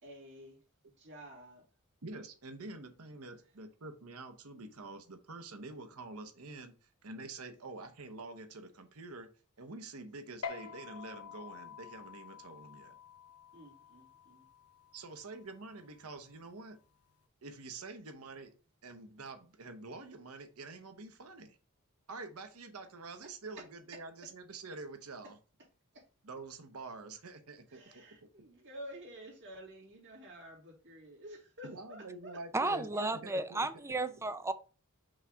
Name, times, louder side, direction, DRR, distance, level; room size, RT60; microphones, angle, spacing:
voice 1, 0.0-1.6 3.4-3.5 13.5-14.5 23.2-23.3 23.6-24.1 25.2-25.3 25.6-25.7 25.9-26.0 27.7-33.0, equal, 55° right, 2.7 m, -51 dB
voice 2, 2.0-9.3 9.6-13.0 14.9-16.8 17.4-18.5 18.8-21.6 22.1-25.4 26.2-28.0 31.6-33.6, right 3 dB, 80° right, 1.0 m, -47 dB
sound 1, 10.4-17.2, left 6 dB, 80° left, 0.8 m, -49 dB
voice 3, 32.5-34.5, right 2 dB, 15° right, 0.5 m, -33 dB
5.5 x 3.5 x 5.0 m
head